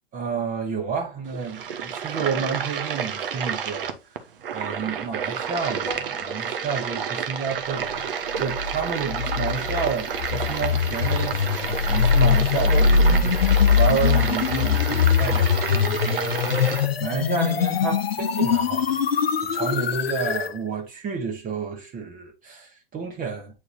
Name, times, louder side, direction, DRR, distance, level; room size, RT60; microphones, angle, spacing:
voice 1, 0.1-3.9 4.5-8.1 8.4-23.6, right 6 dB, 25° right, 1.5 m, -30 dB
sound 1, 1.3-16.9, right 7 dB, 60° right, 1.1 m, -30 dB
sound 2, 5.9-7.8, right 1 dB, 10° left, 2.2 m, -41 dB
sound 3, 8.4-20.5, left 6 dB, 75° left, 0.8 m, -22 dB
8.6 x 4.4 x 2.8 m
figure-of-eight pair, 95°, 30 cm